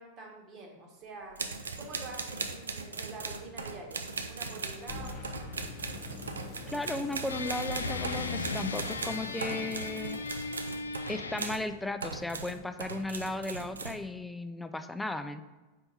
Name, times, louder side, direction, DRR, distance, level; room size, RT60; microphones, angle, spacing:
voice 1, 0.0-1.4 1.8-5.2, right 3 dB, 30° right, 1 dB, 1.2 m, -46 dB
sound 1, 1.3-11.7 12.0-14.0, right 4 dB, 70° right, 0.4 m, -39 dB
sound 2, 4.9-11.0, left 3 dB, 40° left, 0.8 m, -45 dB
voice 2, 6.7-10.2 11.1-15.5, left 2 dB, 5° left, 9 dB, 0.4 m, -36 dB
sound 3, 7.3-11.8, left 3 dB, 75° left, 0.3 m, -37 dB
5.4 x 4.4 x 4.2 m, 1.2 s
figure-of-eight pair, 90°, 0 cm